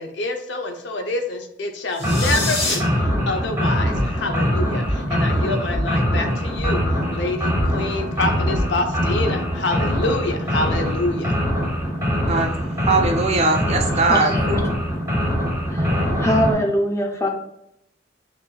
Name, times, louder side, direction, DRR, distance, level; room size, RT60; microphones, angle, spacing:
voice 1, 0.0-11.4, left 2 dB, 70° left, 5 dB, 0.6 m, -27 dB
sound 1, 1.9-2.8, left 2 dB, 85° left, 1.2 m, -25 dB
sound 2, 2.0-16.5, equal, 15° right, 0.9 m, -23 dB
sound 3, 3.4-3.5 3.9-4.3 4.8-5.2 5.7-6.1 6.5-7.2 7.5-7.9 8.5-8.6, equal, 35° left, 1.1 m, -27 dB
voice 2, 12.9-14.7, right 3 dB, 35° right, 4 dB, 0.5 m, -20 dB
voice 3, 14.1-14.6 15.7-15.9 16.2-17.3, equal, 15° left, 1 dB, 0.6 m, -22 dB
5.7 x 2.5 x 2.2 m, 0.79 s
head